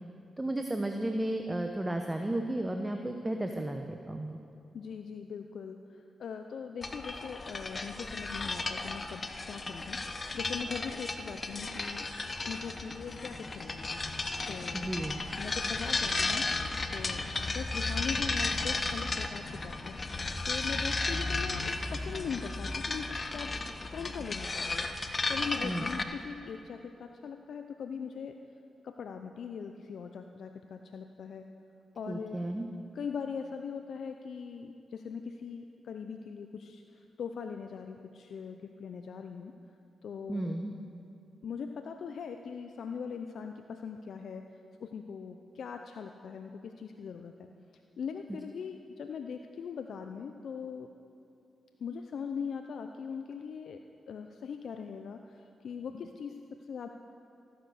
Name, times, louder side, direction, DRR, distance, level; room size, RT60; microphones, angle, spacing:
voice 1, 0.4-4.4 14.7-15.2 25.6-25.8 32.1-32.7 40.3-40.7, right 1 dB, 20° right, 4 dB, 1.0 m, -33 dB
voice 2, 4.7-12.1 12.5-14.0 14.4-14.9 15.4-16.4 16.9-20.0 20.4-23.5 23.9-24.9 25.3-28.4 28.8-31.5 31.9-32.4 32.9-39.5 40.0-40.5 41.4-44.5 44.8-47.5 48.0-50.9 51.8-56.9, left 6 dB, 70° left, 6 dB, 0.5 m, -41 dB
sound 1, 6.8-26.0, left 3 dB, 40° left, 1.0 m, -34 dB
14.5 x 10.0 x 6.5 m, 2.6 s
supercardioid pair, 45°, 0 cm